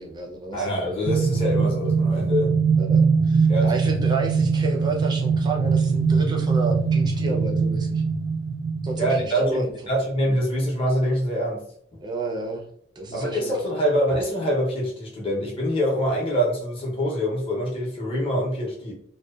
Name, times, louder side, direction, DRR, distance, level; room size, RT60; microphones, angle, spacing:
voice 1, 0.0-0.7 2.8-8.0 8.8-9.7 10.3-10.4 12.0-12.6 13.0-13.5, right 2 dB, 20° right, 0 dB, 0.4 m, -31 dB
voice 2, 0.5-2.5 3.5-3.7 9.0-11.6 11.9-12.0 13.1-18.9, equal, 30° left, -3 dB, 0.6 m, -25 dB
sound 1, 1.0-9.2, right 5 dB, 75° right, 0.6 m, -22 dB
2.6 x 2.1 x 2.3 m, 0.64 s
head